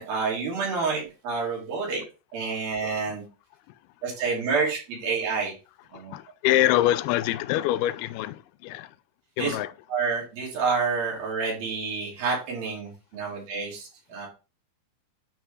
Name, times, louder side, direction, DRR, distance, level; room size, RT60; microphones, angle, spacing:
voice 1, 0.0-2.0 2.3-3.3 4.0-5.5 5.9-6.1 6.5-6.6 9.4-9.6 9.9-14.3, right 4 dB, 75° right, 4.4 m, -28 dB
voice 2, 6.1-8.9 9.4-9.7, left 14 dB, 90° left, 2.5 m, -25 dB
8.9 x 4.7 x 3.3 m
omnidirectional pair, 4.4 m